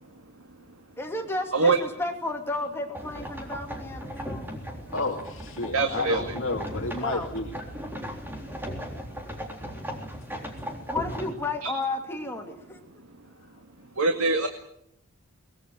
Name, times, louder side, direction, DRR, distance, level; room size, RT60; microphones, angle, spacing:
voice 1, 1.0-4.4 7.0-7.3 10.9-12.8, left 2 dB, 10° left, 2 dB, 2.6 m, -32 dB
sound 1, 2.9-11.3, equal, 10° right, 3.7 m, -37 dB
voice 2, 4.6-7.5 10.4-10.5, left 3 dB, 60° left, 0 dB, 2.5 m, -32 dB
voice 3, 5.7-6.2 11.6-11.7 14.0-14.5, right 4 dB, 80° right, 5 dB, 2.1 m, -23 dB
23.0 x 21.0 x 7.8 m, 0.74 s
head